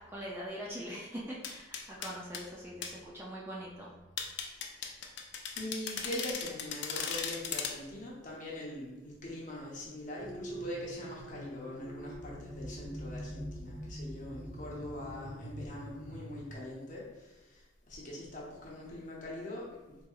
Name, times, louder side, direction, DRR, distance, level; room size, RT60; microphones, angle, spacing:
voice 1, 0.0-3.9, equal, 10° right, -5 dB, 0.4 m, -42 dB
sound 1, 1.4-2.4 2.8-2.9 4.2-7.8, left 6 dB, 60° left, 0.4 m, -37 dB
voice 2, 5.6-20.0, left 1 dB, 40° left, -5 dB, 0.8 m, -42 dB
sound 2, 10.2-16.4, right 1 dB, 10° left, 1.0 m, -44 dB
3.9 x 2.7 x 2.4 m, 1.0 s
head